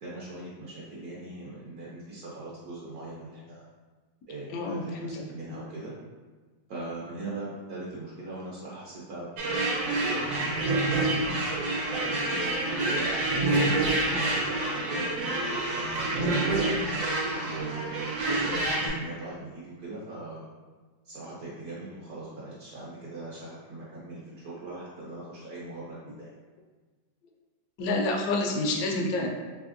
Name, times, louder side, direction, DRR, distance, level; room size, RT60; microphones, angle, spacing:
voice 1, 0.0-3.7 4.3-5.9 6.7-9.3 9.7-11.4 11.8-16.8 17.4-20.5 21.0-26.3, right 2 dB, 65° right, -7 dB, 1.0 m, -41 dB
voice 2, 4.5-5.2 27.8-29.3, left 2 dB, 70° left, 1 dB, 0.9 m, -28 dB
sound 1, 9.4-18.9, right 2 dB, 90° right, 1.4 m, -27 dB
3.4 x 2.7 x 2.5 m, 1.3 s
omnidirectional pair, 2.0 m